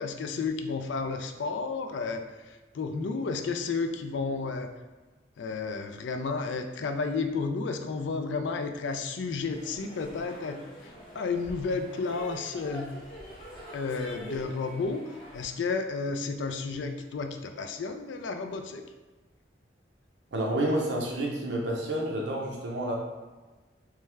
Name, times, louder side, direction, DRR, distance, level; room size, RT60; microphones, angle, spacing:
voice 1, 0.0-2.2 2.7-4.8 5.4-12.9 13.7-15.0 15.3-18.8, left 4 dB, 80° left, 6 dB, 0.4 m, -32 dB
sound 1, 9.5-15.5, equal, 25° left, 1.0 m, -45 dB
voice 2, 20.3-23.0, right 1 dB, 75° right, -1 dB, 0.7 m, -29 dB
3.3 x 3.3 x 3.3 m, 1.2 s
head